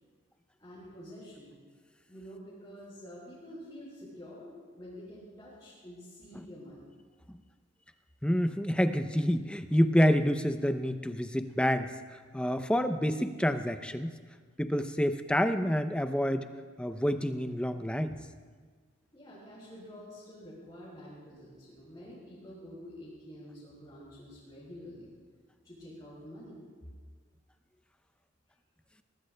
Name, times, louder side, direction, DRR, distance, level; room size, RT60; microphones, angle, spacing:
voice 1, 0.6-1.5 2.1-6.9 19.1-25.1 25.6-26.6, equal, 20° left, -9 dB, 4.8 m, -48 dB
voice 2, 8.2-11.9 12.3-14.1 14.6-16.5 16.8-18.2, equal, 5° left, 9 dB, 0.5 m, -28 dB
22.5 x 19.5 x 2.2 m, 1.6 s
head